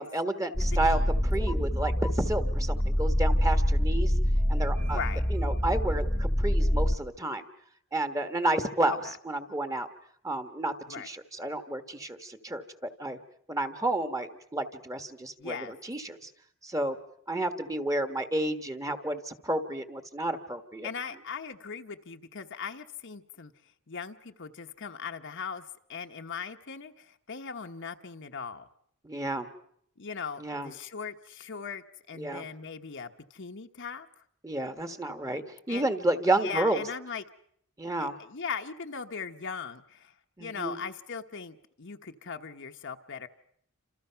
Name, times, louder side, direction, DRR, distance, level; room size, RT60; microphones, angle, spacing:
voice 1, 0.0-1.0 1.3-4.1 4.5-5.0 5.3-7.4 7.9-9.9 10.2-13.2 13.5-16.3 16.6-17.0 17.3-20.9 29.0-29.5 30.4-30.7 32.1-32.5 34.4-36.8 37.8-38.2 40.4-40.8, right 1 dB, 15° right, 8 dB, 1.4 m, -31 dB
sound 1, 0.5-7.0, equal, 10° left, 1.2 m, -26 dB
voice 2, 0.6-1.1 4.8-5.2 8.9-9.1 10.9-11.1 15.4-15.7 20.8-23.5 23.9-28.7 30.0-34.1 35.7-35.8 36.4-37.2 38.0-40.1 40.4-43.3, left 6 dB, 55° left, 6 dB, 1.1 m, -39 dB
29.0 x 27.0 x 5.8 m, 0.70 s
head